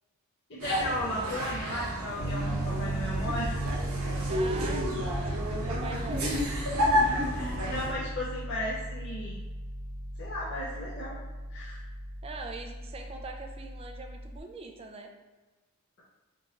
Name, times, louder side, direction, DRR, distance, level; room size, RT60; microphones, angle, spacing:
voice 1, 0.5-3.6 7.3-9.4 10.2-11.2 11.5-11.8, left 1 dB, 50° left, -8 dB, 0.7 m, -35 dB
sound 1, 0.6-7.9, equal, 75° right, 0.9 m, -31 dB
Piano, 2.2-14.4, right 1 dB, 25° left, 1.1 m, -37 dB
voice 2, 4.2-6.4 12.2-15.1, right 3 dB, 25° right, 3 dB, 0.4 m, -42 dB
3.8 x 2.5 x 3.9 m, 1.2 s
head